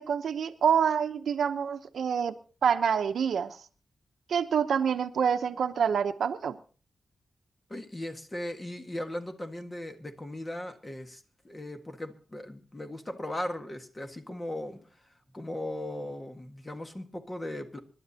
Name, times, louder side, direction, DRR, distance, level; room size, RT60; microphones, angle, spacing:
voice 1, 0.0-2.3 2.6-3.6 4.3-6.6, right 7 dB, 85° right, 7 dB, 0.8 m, -27 dB
voice 2, 7.7-14.9 15.3-17.8, left 1 dB, 20° left, 6 dB, 1.6 m, -38 dB
25.5 x 11.5 x 2.8 m, 0.39 s
wide cardioid pair, 110°, 0 cm